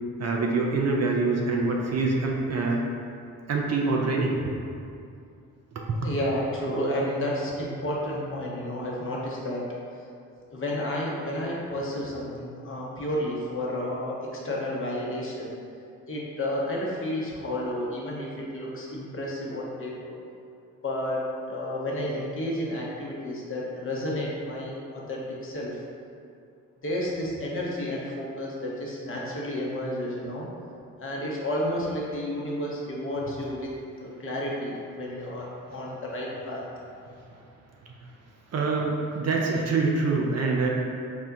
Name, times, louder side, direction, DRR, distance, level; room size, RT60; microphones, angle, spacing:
voice 1, 0.2-2.8 3.5-4.6 5.7-6.0 38.5-40.7, right 3 dB, 40° right, -1 dB, 0.5 m, -25 dB
voice 2, 6.0-9.6 10.5-15.5 16.1-20.2 20.8-25.8 26.8-30.5 31.0-33.7 34.0-36.6, left 1 dB, 30° left, -4 dB, 0.9 m, -31 dB
4.2 x 2.2 x 2.7 m, 2.4 s
hypercardioid pair, 45°, 41 cm